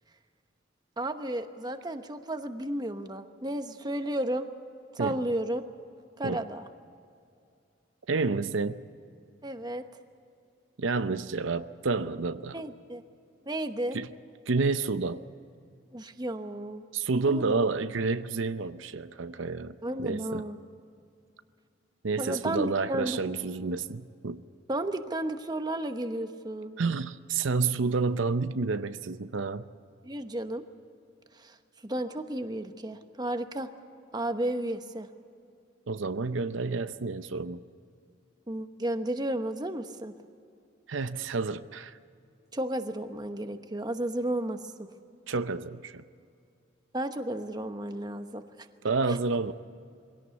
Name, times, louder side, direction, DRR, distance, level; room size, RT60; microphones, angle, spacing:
voice 1, 1.0-4.5 4.9-5.6 6.2-6.7 9.4-9.9 12.5-13.0 13.5-14.0 15.9-16.8 17.2-17.6 19.8-20.6 22.2-23.2 24.7-26.8 30.0-30.6 31.3-31.6 31.8-33.7 34.1-35.1 38.5-40.1 42.5-44.9 46.9-48.7 49.1-49.2, right 1 dB, 20° right, 8 dB, 1.0 m, -33 dB
voice 2, 8.1-8.8 10.8-12.6 13.9-14.1 14.5-15.2 16.9-20.5 22.0-24.4 26.8-29.6 35.9-37.6 40.9-42.0 45.3-46.0 48.8-49.5, right 4 dB, 80° right, 11 dB, 0.7 m, -29 dB
22.5 x 17.5 x 8.2 m, 2.5 s
head